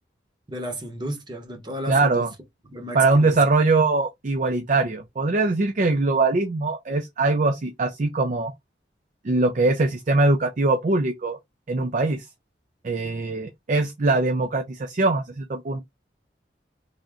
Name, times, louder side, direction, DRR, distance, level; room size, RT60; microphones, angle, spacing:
voice 1, 0.5-2.2 2.7-3.4, right 1 dB, 25° right, 0.9 m, -33 dB
voice 2, 1.9-2.3 2.9-8.5 9.2-11.4 11.7-12.3 12.8-15.8, right 3 dB, 40° right, 0.4 m, -22 dB
3.5 x 2.6 x 3.6 m
head